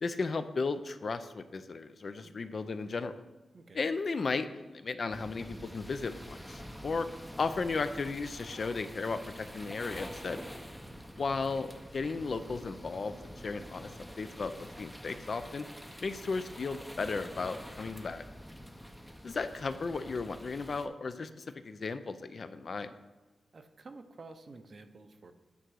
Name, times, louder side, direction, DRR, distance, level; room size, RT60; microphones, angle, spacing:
voice 1, 0.0-3.2 3.7-7.1 7.4-10.4 11.2-13.9 14.2-15.7 16.0-18.2 19.2-22.9, left 4 dB, 45° left, 10 dB, 0.4 m, -35 dB
sound 1, 5.1-20.9, equal, ahead, 0.6 m, -47 dB
voice 2, 23.5-25.3, right 3 dB, 40° right, 8 dB, 0.6 m, -51 dB
9.5 x 3.8 x 6.2 m, 1.2 s
wide cardioid pair, 140°, 0 cm